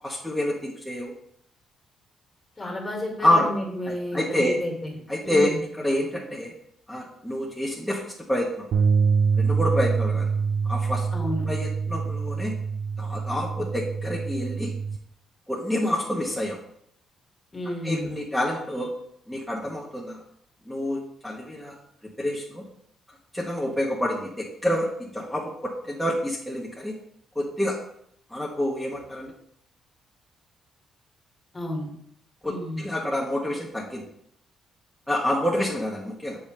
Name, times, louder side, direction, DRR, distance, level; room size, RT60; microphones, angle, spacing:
voice 1, 0.0-1.1 2.6-2.7 3.2-3.5 3.9-4.6 5.1-6.5 6.9-8.0 8.3-8.6 9.4-10.3 10.6-11.1 11.4-12.6 13.0-14.7 15.5-16.6 17.7-18.9 19.3-20.2 20.7-21.7 22.2-22.6 23.3-26.9 27.3-27.8 28.3-29.3 32.4-34.0 35.1-36.4, left 1 dB, 5° left, -4 dB, 1.1 m, -27 dB
voice 2, 2.6-4.9 5.2-5.6 11.1-11.5 17.5-18.2 31.5-31.9 32.4-32.9 35.6-35.7, left 1 dB, 25° left, 0 dB, 2.1 m, -31 dB
sound 1, 8.7-15.0, right 5 dB, 70° right, 0.6 m, -25 dB
7.0 x 5.0 x 3.3 m, 0.71 s
cardioid pair, 90°, 0 cm